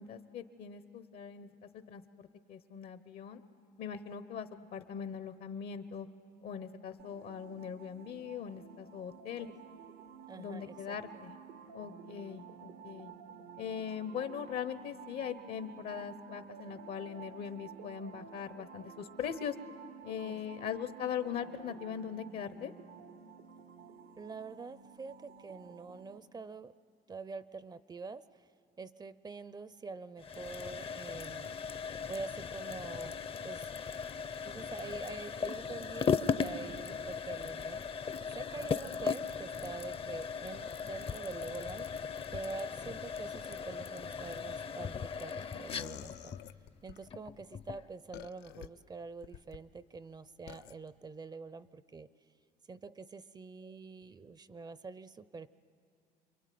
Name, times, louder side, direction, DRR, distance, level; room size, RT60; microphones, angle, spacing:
voice 1, 0.0-3.4 3.8-6.1 6.4-9.5 10.4-11.4 11.7-13.1 13.6-19.5 20.0-22.7, left 8 dB, 65° left, 11 dB, 1.0 m, -41 dB
sound 1, 7.0-26.2, right 7 dB, 80° right, 1.1 m, -52 dB
voice 2, 10.3-11.2 20.2-20.8 24.2-26.7 27.1-28.4 28.8-31.6 32.1-33.7 34.4-38.0 38.3-42.0 42.3-46.3 46.8-52.1 52.7-55.5, right 4 dB, 25° right, 16 dB, 0.6 m, -46 dB
sound 2, 30.2-47.9, left 6 dB, 35° left, 0.7 m, -38 dB
sound 3, 45.7-47.0 48.1-48.7 49.2-49.6 50.5-50.7, left 12 dB, 85° left, 0.8 m, -47 dB
27.5 x 23.0 x 9.3 m, 2.4 s
cardioid pair, 110°, 17 cm